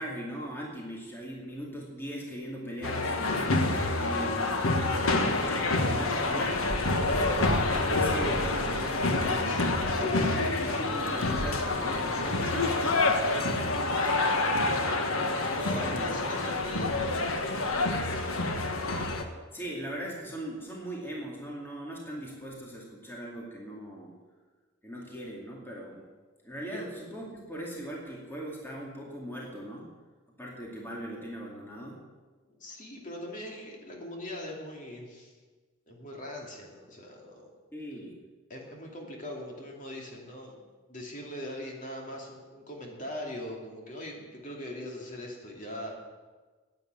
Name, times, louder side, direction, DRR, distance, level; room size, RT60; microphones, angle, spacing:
voice 1, 0.0-14.0 15.5-16.0 19.5-24.1 24.8-26.1 26.4-29.9 30.4-32.0 37.7-38.2, right 1 dB, 10° left, -3 dB, 2.3 m, -40 dB
sound 1, 2.8-19.2, left 2 dB, 85° left, 1.5 m, -27 dB
voice 2, 15.5-17.2 26.7-26.8 32.5-35.3 35.9-37.5 38.5-40.6 40.9-45.9, left 1 dB, 40° left, -1 dB, 2.7 m, -41 dB
11.0 x 9.7 x 9.2 m, 1.3 s
head